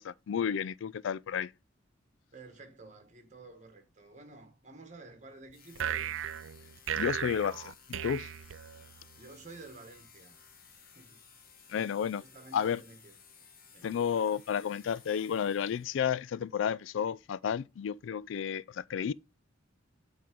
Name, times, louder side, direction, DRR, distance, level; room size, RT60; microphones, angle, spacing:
voice 1, 0.0-1.5 6.9-8.3 11.7-12.2 12.5-12.8 13.8-19.1, left 8 dB, 70° left, 0.3 m, -32 dB
voice 2, 2.3-6.3 9.2-10.4 10.9-11.3 12.2-13.1 13.7-13.9, right 3 dB, 35° right, 1.7 m, -51 dB
sound 1, 5.5-16.1, left 6 dB, 50° left, 1.5 m, -58 dB
sound 2, 5.8-9.2, right 10 dB, 80° right, 0.4 m, -36 dB
8.6 x 3.7 x 5.2 m
head